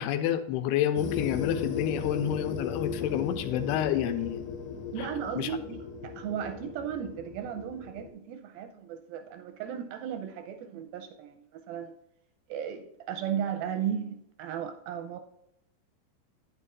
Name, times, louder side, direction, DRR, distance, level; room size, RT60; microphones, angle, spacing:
voice 1, 0.0-4.4 5.0-5.1 5.4-5.5, left 10 dB, 90° left, 2.7 m, -29 dB
sound 1, 1.0-8.1, left 5 dB, 70° left, 2.3 m, -37 dB
voice 2, 4.9-12.0 12.5-15.2, right 8 dB, 85° right, 2.2 m, -35 dB
10.0 x 9.7 x 2.5 m
omnidirectional pair, 4.6 m